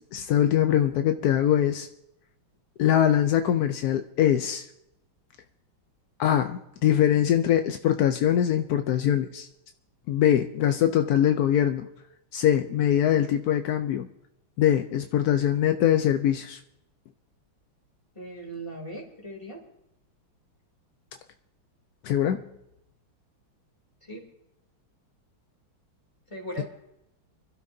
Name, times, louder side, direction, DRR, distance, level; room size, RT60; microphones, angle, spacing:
voice 1, 0.1-1.9 2.8-4.7 6.2-9.5 10.1-11.9 12.3-14.1 14.6-16.6 22.0-22.4, left 10 dB, 80° left, 7 dB, 0.8 m, -23 dB
voice 2, 18.1-19.6 24.0-24.2 26.3-26.6, right 1 dB, 15° left, -3 dB, 2.9 m, -38 dB
25.0 x 12.5 x 2.7 m, 0.85 s
omnidirectional pair, 2.3 m